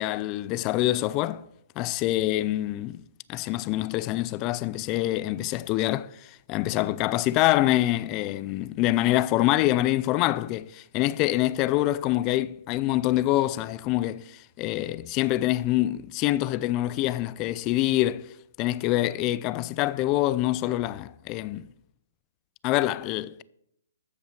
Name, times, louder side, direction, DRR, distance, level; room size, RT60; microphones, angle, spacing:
voice 1, 0.0-1.4 1.8-3.0 3.3-6.1 6.5-18.3 18.6-21.6 22.6-23.4, left 16 dB, 25° left, 0.4 m, -25 dB
13.5 x 5.6 x 5.9 m
hypercardioid pair, 155°, 0 cm